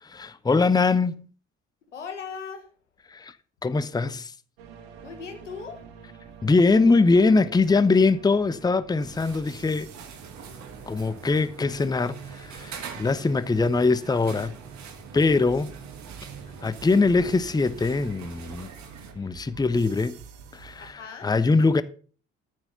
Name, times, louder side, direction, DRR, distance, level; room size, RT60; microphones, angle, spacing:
voice 1, 0.0-1.3 3.1-3.3 3.6-4.3 6.4-9.9 10.9-14.6 15.1-15.7 16.6-18.7 19.2-20.2 20.5-21.8, left 3 dB, 10° left, 0.7 m, -22 dB
voice 2, 1.9-2.7 5.0-5.8 20.8-21.3, left 6 dB, 80° left, 1.3 m, -38 dB
sound 1, 4.6-20.9, right 7 dB, 65° right, 1.9 m, -47 dB
sound 2, 9.0-19.1, right 6 dB, 50° right, 2.0 m, -44 dB
14.0 x 4.6 x 6.9 m
figure-of-eight pair, 45°, 36 cm